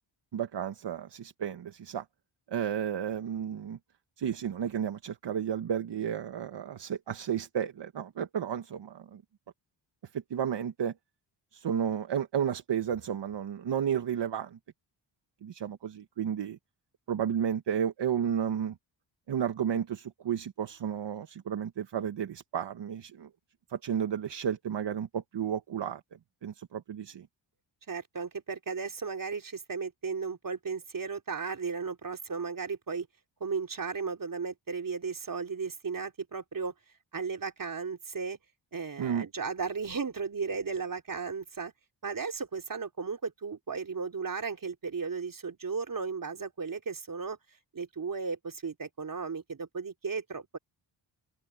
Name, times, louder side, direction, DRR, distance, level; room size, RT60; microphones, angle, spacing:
voice 1, 0.3-2.0 2.5-3.8 4.2-9.2 10.1-10.9 11.5-14.6 15.4-16.6 17.1-18.8 19.3-23.3 23.7-26.0 26.4-27.3 39.0-39.3, right 8 dB, 65° right, 1.5 m, -32 dB
voice 2, 27.9-33.1 33.4-36.7 37.1-38.4 38.7-41.7 42.0-47.4 47.7-50.6, right 5 dB, 45° right, 3.9 m, -35 dB
cardioid pair, 65°, 46 cm